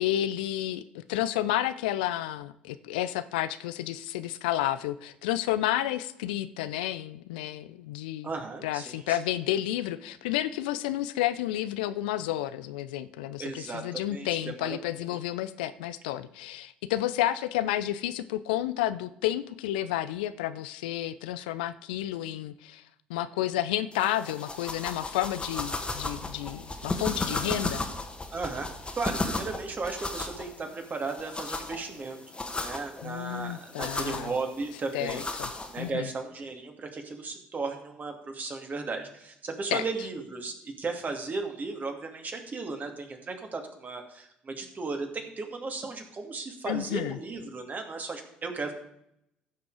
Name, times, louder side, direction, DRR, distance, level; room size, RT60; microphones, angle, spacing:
voice 1, 0.0-8.3 8.6-22.8 23.1-27.8 33.0-34.3 34.9-35.5 35.8-36.1 39.7-39.8 46.7-47.2, left 13 dB, 75° left, 14 dB, 0.5 m, -31 dB
voice 2, 8.2-9.2 13.4-14.3 14.6-15.1 28.3-28.7 28.9-32.2 32.6-35.2 35.7-48.7, right 3 dB, 35° right, 4 dB, 2.4 m, -35 dB
sound 1, 23.9-35.9, left 2 dB, 20° left, 1.7 m, -35 dB
15.0 x 6.0 x 4.8 m, 0.77 s
hypercardioid pair, 50°, 5 cm